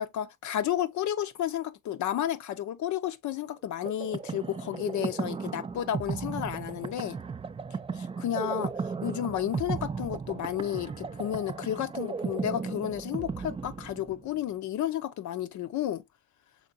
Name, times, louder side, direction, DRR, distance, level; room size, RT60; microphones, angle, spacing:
voice 1, 0.0-7.2 8.0-8.7 9.0-16.0, left 11 dB, 75° left, 0.7 m, -32 dB
sound 1, 3.8-14.4, right 5 dB, 20° right, 0.3 m, -35 dB
5.6 x 3.7 x 2.5 m
cardioid pair, 90°, 30 cm